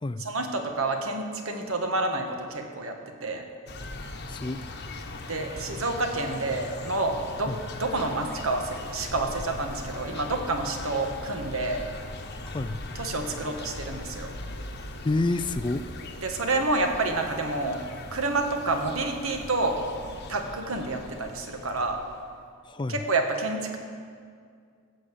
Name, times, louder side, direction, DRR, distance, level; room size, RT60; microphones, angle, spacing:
voice 1, 0.2-3.4 5.3-7.5 7.8-11.9 13.0-14.4 16.2-17.8 18.1-19.8 20.3-22.0 22.9-23.8, right 2 dB, 70° right, 4 dB, 1.5 m, -29 dB
sound 1, 3.7-22.3, left 2 dB, 50° left, 1.2 m, -40 dB
voice 2, 4.3-4.6 7.5-7.6 12.5-12.8 15.0-15.9 22.6-23.0, left 2 dB, 20° left, 11 dB, 0.4 m, -28 dB
14.5 x 6.7 x 8.6 m, 2.2 s
head